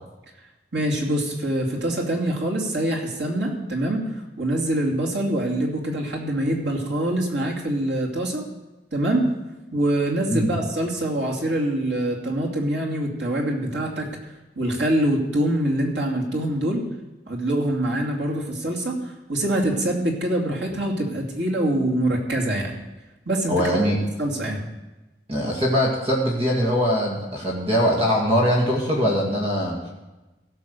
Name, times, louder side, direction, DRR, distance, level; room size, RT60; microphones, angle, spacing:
voice 1, 0.7-4.1 4.4-8.4 8.9-9.3 9.7-14.1 14.6-16.8 17.3-22.8 23.3-23.6 24.2-24.7, right 1 dB, 85° right, -1 dB, 2.7 m, -24 dB
voice 2, 23.5-24.0 25.3-29.8, equal, 35° right, -2 dB, 2.2 m, -22 dB
16.0 x 6.0 x 6.7 m, 1.1 s
head